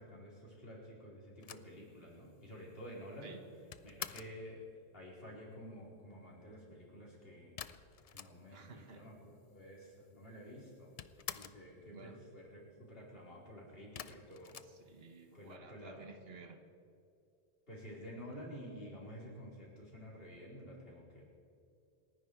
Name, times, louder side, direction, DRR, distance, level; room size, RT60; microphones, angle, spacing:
voice 1, 0.0-3.4 3.8-4.6 4.9-7.5 8.1-9.1 9.5-10.9 11.3-14.6 15.3-16.1 17.7-21.2, equal, 70° left, -4 dB, 4.6 m, -51 dB
sound 1, 1.4-4.4 7.6-8.7 9.0-9.1 9.3-10.1 10.4-11.7 13.9-15.4, left 8 dB, 45° left, 0.5 m, -48 dB
voice 2, 8.5-9.1 11.9-12.2 14.6-16.6, right 5 dB, 75° right, 6 dB, 1.5 m, -54 dB
28.0 x 10.5 x 4.7 m, 2.5 s
omnidirectional pair, 1.0 m